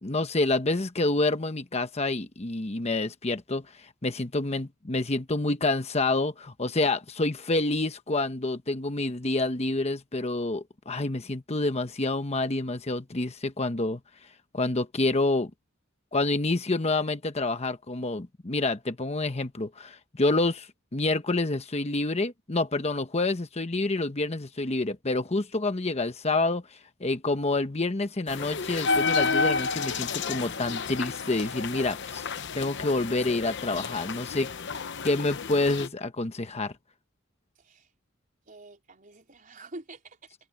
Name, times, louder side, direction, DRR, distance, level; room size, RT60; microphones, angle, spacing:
voice 1, 0.0-14.0 14.5-15.5 16.1-34.5 35.0-36.7, left 2 dB, 30° left, 1.0 m, -28 dB
sound 1, 28.3-35.9, left 4 dB, 60° left, 0.9 m, -31 dB
voice 2, 37.5-37.9 38.5-40.4, right 2 dB, 40° right, 4.3 m, -47 dB
open air
head